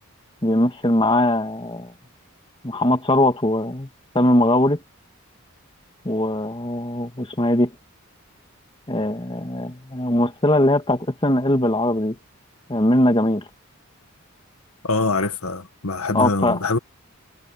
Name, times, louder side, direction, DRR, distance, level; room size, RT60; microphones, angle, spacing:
voice 1, 0.4-1.9 2.6-3.9 4.1-4.8 6.0-7.7 8.9-12.2 12.7-13.4 16.1-16.6, left 1 dB, 25° left, 1.6 m, -20 dB
voice 2, 14.8-16.8, left 3 dB, 80° left, 1.7 m, -24 dB
head